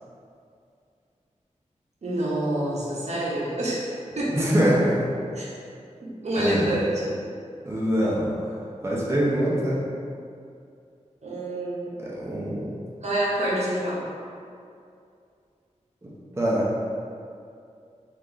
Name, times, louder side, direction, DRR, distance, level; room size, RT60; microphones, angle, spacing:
voice 1, 2.0-3.9 4.2-4.5 5.3-5.5 6.0-7.2 11.2-12.0 13.0-14.0, right 1 dB, 65° right, -6 dB, 0.7 m, -27 dB
voice 2, 4.3-5.0 6.3-6.7 7.6-8.3 8.8-9.8 12.0-12.7 16.0-16.7, equal, 20° right, -7 dB, 0.6 m, -24 dB
3.0 x 2.4 x 3.7 m, 2.4 s
wide cardioid pair, 100°, 12 cm